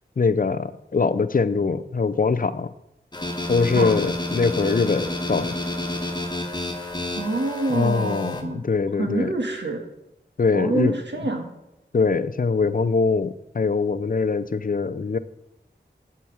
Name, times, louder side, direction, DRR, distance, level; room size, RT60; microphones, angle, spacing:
voice 1, 0.2-2.7 3.5-5.6 7.7-9.3 10.4-10.9 11.9-15.2, left 4 dB, 50° left, 13 dB, 0.5 m, -22 dB
sound 1, 3.1-8.4, left 1 dB, 25° left, 1.2 m, -30 dB
voice 2, 7.2-8.7 9.0-9.8 10.5-11.5, right 2 dB, 75° right, 3 dB, 1.6 m, -26 dB
11.5 x 5.8 x 4.7 m, 0.90 s
wide cardioid pair, 65°, 18 cm